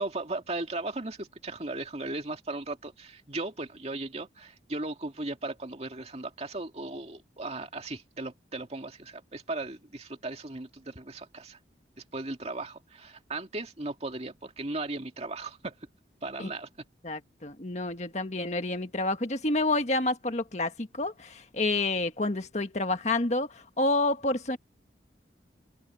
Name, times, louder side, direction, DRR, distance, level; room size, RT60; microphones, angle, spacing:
voice 1, 0.0-11.6 12.1-15.7 16.2-16.7, right 2 dB, 35° right, 2.2 m, -37 dB
voice 2, 17.0-24.6, left 2 dB, 40° left, 1.6 m, -29 dB
head